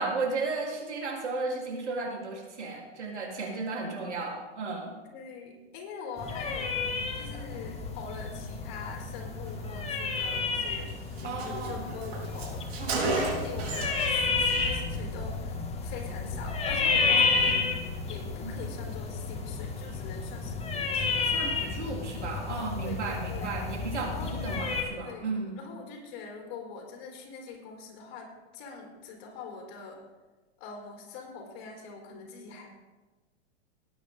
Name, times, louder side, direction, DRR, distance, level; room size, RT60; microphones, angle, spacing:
voice 1, 0.0-4.9 11.2-11.9 12.8-13.0 17.1-17.7 18.4-18.5 21.2-25.6, right 3 dB, 90° right, -2 dB, 4.0 m, -34 dB
voice 2, 5.1-17.6 18.1-21.3 22.8-23.5 24.1-24.4 24.9-25.3 25.6-30.0 30.6-32.7, left 5 dB, 45° left, 1 dB, 4.4 m, -43 dB
sound 1, 6.2-24.8, left 4 dB, 20° left, 1.8 m, -31 dB
Car, 10.5-10.6 10.9-11.0 11.2-14.1 14.4-14.7, right 3 dB, 65° right, 4.3 m, -33 dB
19.0 x 9.4 x 3.9 m, 1.2 s
hypercardioid pair, 115°, 34 cm